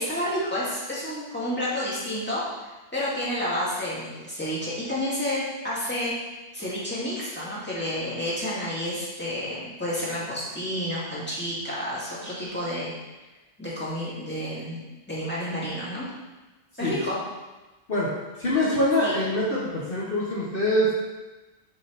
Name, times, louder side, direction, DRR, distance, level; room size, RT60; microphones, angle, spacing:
voice 1, 0.0-2.4 2.9-6.1 6.5-12.9 13.6-16.0 16.8-17.2 19.0-19.1, equal, 10° left, -8 dB, 2.1 m, -30 dB
voice 2, 18.4-20.9, left 1 dB, 55° left, -7 dB, 1.4 m, -24 dB
6.6 x 4.6 x 4.2 m, 1.2 s
omnidirectional pair, 1.1 m